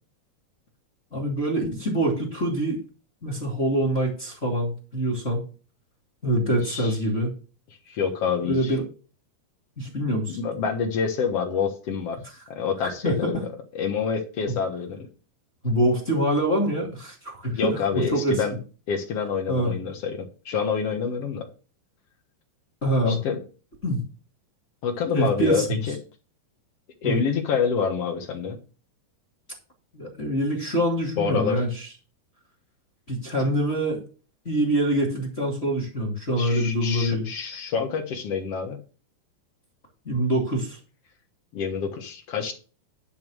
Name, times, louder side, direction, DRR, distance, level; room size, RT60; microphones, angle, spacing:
voice 1, 1.1-2.8 3.2-5.4 6.2-7.3 8.4-8.8 9.8-10.4 12.8-13.3 15.6-18.4 19.5-19.7 22.8-23.2 23.8-24.0 25.1-25.6 27.0-27.2 29.9-31.9 33.1-34.0 34.4-37.3 40.0-40.8, right 1 dB, 20° left, 0 dB, 2.3 m, -25 dB
voice 2, 6.5-6.9 7.9-8.7 10.3-12.2 12.5-13.3 13.7-15.1 17.5-18.5 18.9-21.5 23.1-23.4 24.8-26.0 27.0-28.6 31.2-31.6 33.4-33.5 36.4-38.8 41.5-42.5, left 6 dB, 60° left, 4 dB, 1.7 m, -27 dB
11.0 x 4.7 x 6.3 m, 0.35 s
omnidirectional pair, 4.5 m